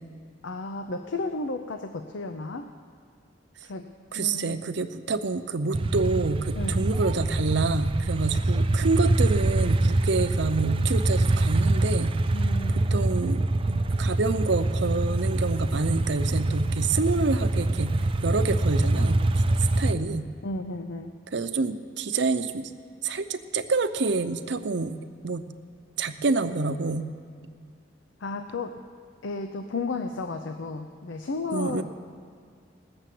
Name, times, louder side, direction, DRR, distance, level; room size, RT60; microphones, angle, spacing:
voice 1, 0.4-2.7 3.6-3.9 4.1-4.6 6.5-6.8 12.3-12.8 20.4-21.2 28.2-28.8 29.2-31.8, left 3 dB, 85° left, 7 dB, 0.6 m, -33 dB
voice 2, 4.1-12.1 12.9-17.9 18.2-19.2 19.8-20.3 21.3-22.7 23.0-24.9 25.2-25.4 26.0-27.1 31.5-31.8, right 3 dB, 65° right, 10 dB, 0.6 m, -27 dB
sound 1, 5.7-19.9, right 2 dB, 30° right, 0.4 m, -24 dB
18.0 x 6.8 x 7.6 m, 2.1 s
head